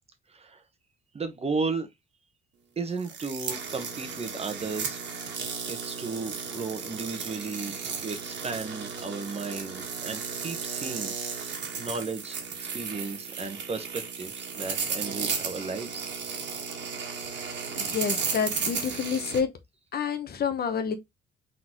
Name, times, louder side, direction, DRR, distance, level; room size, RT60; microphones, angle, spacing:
voice 1, 0.3-0.6 1.1-1.9 2.8-5.0 5.7-16.1, right 4 dB, 30° right, 1.0 m, -35 dB
sound 1, 3.0-19.4, right 6 dB, 65° right, 1.4 m, -34 dB
voice 2, 17.8-19.5 19.9-20.9, left 6 dB, 50° left, 1.0 m, -28 dB
3.9 x 3.9 x 3.0 m
cardioid pair, 90°, 20 cm